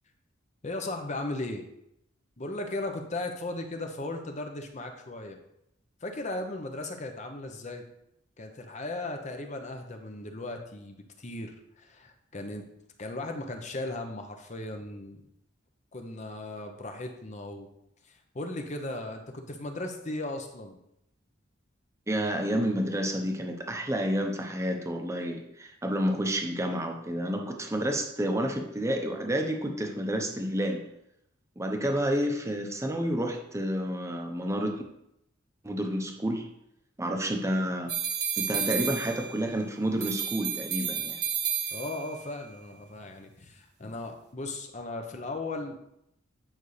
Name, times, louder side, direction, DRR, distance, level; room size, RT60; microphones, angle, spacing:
voice 1, 0.6-1.7 2.4-5.4 6.0-7.8 8.4-12.6 13.0-15.2 15.9-17.7 18.1-20.8 41.7-45.8, left 2 dB, 35° left, 4 dB, 0.8 m, -37 dB
voice 2, 22.1-30.8 31.6-34.8 35.6-36.5 37.0-37.9 38.4-41.2, equal, 15° right, 3 dB, 0.9 m, -30 dB
sound 1, 37.9-39.5 40.0-42.2, right 7 dB, 55° right, 1.1 m, -31 dB
9.2 x 5.4 x 3.3 m, 0.79 s
head